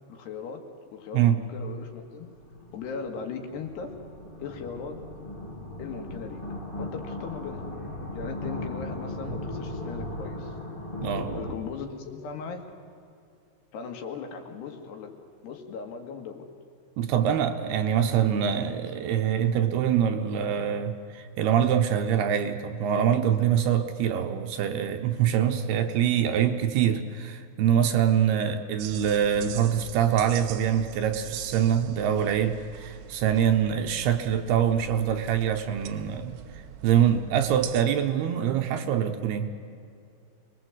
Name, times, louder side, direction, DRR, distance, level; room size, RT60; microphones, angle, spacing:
voice 1, 0.1-2.4 2.7-3.9 4.4-5.0 5.8-6.5 6.8-7.7 8.1-10.5 11.3-12.7 13.7-15.2 15.4-16.5, left 6 dB, 70° left, 4 dB, 3.9 m, -38 dB
sound 1, 1.4-1.5 2.0-11.5, left 1 dB, 30° left, 0.9 m, -37 dB
voice 2, 11.0-11.3 17.0-36.4 36.8-39.5, right 9 dB, 70° right, 7 dB, 2.8 m, -24 dB
sound 2, 28.8-37.8, right 12 dB, 90° right, 3.2 m, -43 dB
26.5 x 21.0 x 8.0 m, 2.5 s
omnidirectional pair, 5.1 m